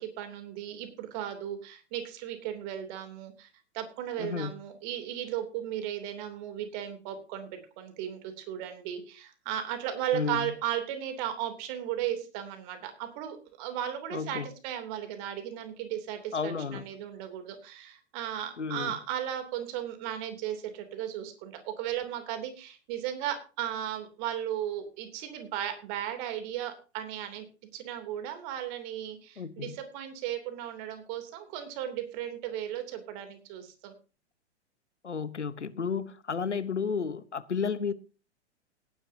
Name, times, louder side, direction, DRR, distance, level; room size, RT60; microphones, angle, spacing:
voice 1, 0.0-3.5 3.7-27.4 27.7-33.9, right 10 dB, 45° right, 3.1 m, -36 dB
voice 2, 4.2-4.5 10.1-10.5 14.1-14.5 16.3-16.9 18.6-18.9 29.4-29.7 35.0-37.9, left 6 dB, 90° left, 1.1 m, -32 dB
17.5 x 10.5 x 2.8 m
figure-of-eight pair, 110°, 34 cm